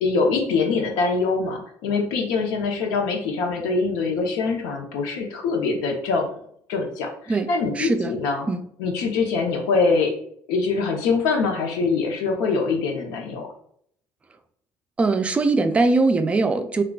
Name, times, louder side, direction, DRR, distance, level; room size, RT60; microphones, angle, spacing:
voice 1, 0.0-6.3 6.7-8.5 8.8-10.1 10.5-13.5, left 4 dB, 85° left, 2 dB, 0.7 m, -23 dB
voice 2, 7.8-8.1 8.5-8.6 15.0-16.8, right 3 dB, 20° right, 7 dB, 0.3 m, -21 dB
3.6 x 2.3 x 2.3 m, 0.67 s
cardioid pair, 105°, 7 cm